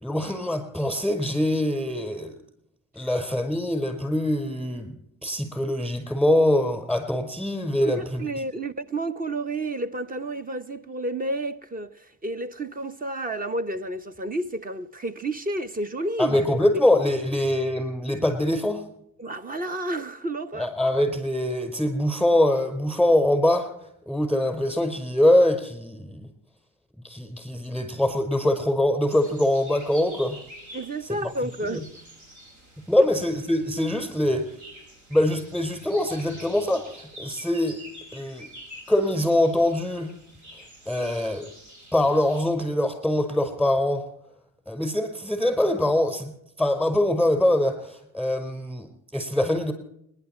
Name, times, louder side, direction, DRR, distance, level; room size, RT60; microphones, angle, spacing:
voice 1, 0.0-2.4 3.0-5.0 5.2-8.3 16.2-18.8 20.6-23.7 24.1-26.3 27.0-30.4 31.7-31.8 32.9-34.5 35.1-37.8 38.1-38.5 38.9-40.1 40.9-41.5 41.9-44.1 44.7-46.3 46.6-48.9 49.1-49.7, left 1 dB, 5° right, 5.1 m, -23 dB
voice 2, 7.8-16.4 19.2-20.7 30.7-31.8 33.0-33.1, right 2 dB, 30° right, 1.1 m, -30 dB
sound 1, 29.1-42.4, right 1 dB, 75° right, 7.4 m, -47 dB
29.5 x 11.0 x 4.5 m
cardioid pair, 90°, 30 cm